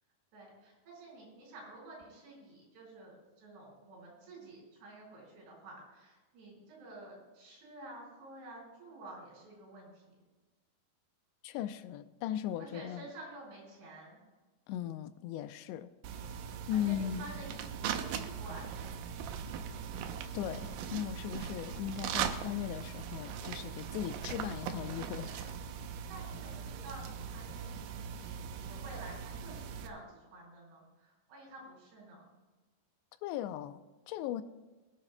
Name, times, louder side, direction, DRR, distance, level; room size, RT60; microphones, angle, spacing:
voice 1, 0.3-10.1 12.6-14.2 16.7-18.8 26.0-32.2, right 2 dB, 70° right, 6.7 m, -50 dB
voice 2, 11.4-13.1 14.7-15.9 16.7-17.3 20.3-25.5 33.2-34.4, left 11 dB, 90° left, 2.8 m, -38 dB
sound 1, 16.0-29.9, right 7 dB, 90° right, 1.9 m, -40 dB
21.5 x 11.0 x 2.2 m
omnidirectional pair, 5.0 m